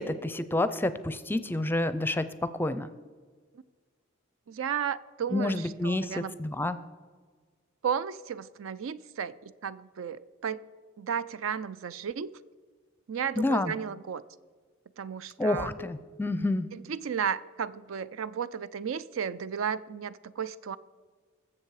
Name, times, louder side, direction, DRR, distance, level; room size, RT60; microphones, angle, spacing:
voice 1, 0.0-2.9 5.3-6.8 13.4-13.7 15.4-16.7, left 2 dB, 10° left, 0.5 m, -29 dB
voice 2, 4.5-6.3 7.8-10.6 11.0-12.3 13.1-14.2 15.0-15.7 16.7-20.8, right 7 dB, 75° right, 0.4 m, -34 dB
20.5 x 7.4 x 4.8 m
head